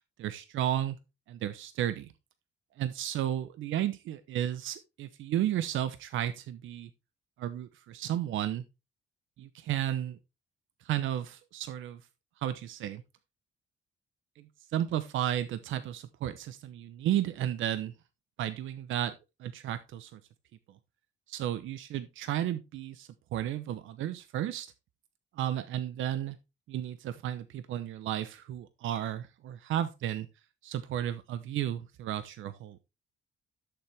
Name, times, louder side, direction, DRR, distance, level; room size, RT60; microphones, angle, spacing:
voice 1, 0.2-1.0 1.3-2.1 2.8-6.9 7.4-8.6 9.4-10.2 10.8-12.0 12.4-13.0 14.4-14.5 14.7-17.9 18.4-19.1 19.4-20.2 21.3-24.7 25.4-26.4 26.7-30.3 30.6-32.8, right 11 dB, 80° right, 12 dB, 0.9 m, -33 dB
11.5 x 7.0 x 3.5 m, 0.26 s
cardioid pair, 90°, 20 cm